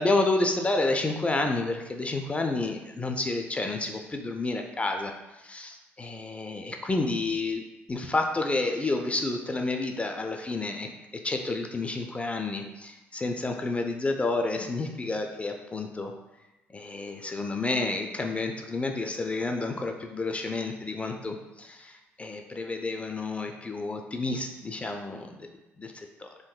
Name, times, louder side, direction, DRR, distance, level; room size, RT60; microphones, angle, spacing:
voice 1, 0.0-5.1 5.4-7.6 7.9-10.9 11.2-16.1 16.7-25.5 25.8-26.3, left 2 dB, 20° left, 4 dB, 0.3 m, -30 dB
3.6 x 2.6 x 2.3 m, 1.0 s
figure-of-eight pair, 50°, 6 cm